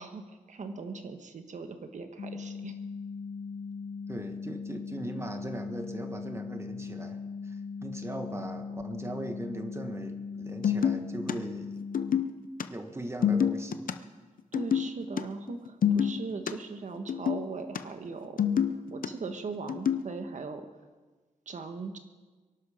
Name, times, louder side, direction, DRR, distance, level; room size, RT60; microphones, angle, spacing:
voice 1, 0.0-2.7 14.5-20.7 21.4-22.0, right 4 dB, 60° right, 6 dB, 1.5 m, -39 dB
sound 1, 2.2-12.2, left 5 dB, 45° left, 0.6 m, -39 dB
voice 2, 4.1-11.8 12.7-13.9, right 1 dB, 20° right, 6 dB, 1.4 m, -39 dB
sound 2, 10.6-11.3 11.8-12.6 13.1-13.9 14.5-14.9 15.2-15.3 15.5-16.5 17.1-17.8 18.2-19.1 19.7-20.1, left 8 dB, 80° left, 0.7 m, -27 dB
23.5 x 11.5 x 5.1 m, 1.3 s
wide cardioid pair, 130°, 14 cm